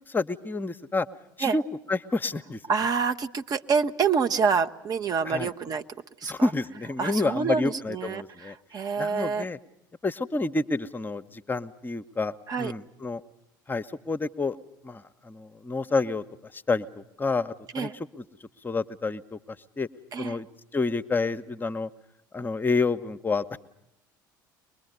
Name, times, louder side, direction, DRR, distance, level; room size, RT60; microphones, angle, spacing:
voice 1, 0.1-1.1 1.4-1.6 1.9-2.6 5.2-5.5 6.2-8.5 9.0-9.6 10.0-13.2 13.7-14.6 14.8-17.9 18.2-18.3 18.6-19.9 20.2-20.5 20.7-21.9 22.3-23.6, left 3 dB, 20° left, 10 dB, 0.9 m, -29 dB
voice 2, 2.7-5.8 6.2-6.5 7.0-9.5 12.5-12.7 17.7-17.9 20.1-20.4, right 5 dB, 35° right, 9 dB, 1.0 m, -27 dB
24.0 x 21.5 x 8.1 m, 0.82 s
figure-of-eight pair, 65°, 11 cm